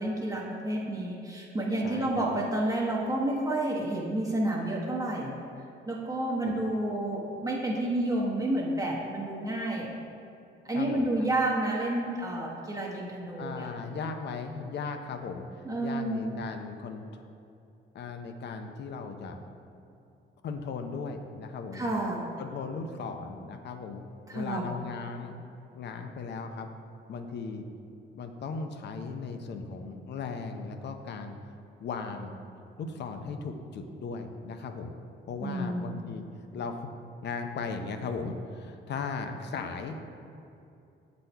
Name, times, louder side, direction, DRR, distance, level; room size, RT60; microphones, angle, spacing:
voice 1, 0.0-5.4 5.9-9.9 10.7-13.7 15.6-16.4 21.7-22.2 24.3-24.7 35.4-36.0, right 1 dB, 20° right, -4 dB, 0.8 m, -30 dB
voice 2, 1.8-2.3 6.4-6.6 10.7-11.1 13.4-17.3 17.9-19.4 20.4-21.8 22.4-24.0 24.3-25.4 25.7-26.7 27.1-27.6 28.1-31.4 31.8-32.4 32.8-34.9 35.3-36.2 36.5-36.9 37.2-40.0, left 4 dB, 60° left, 6 dB, 0.6 m, -37 dB
6.8 x 4.2 x 4.4 m, 2.6 s
cardioid pair, 90°, 20 cm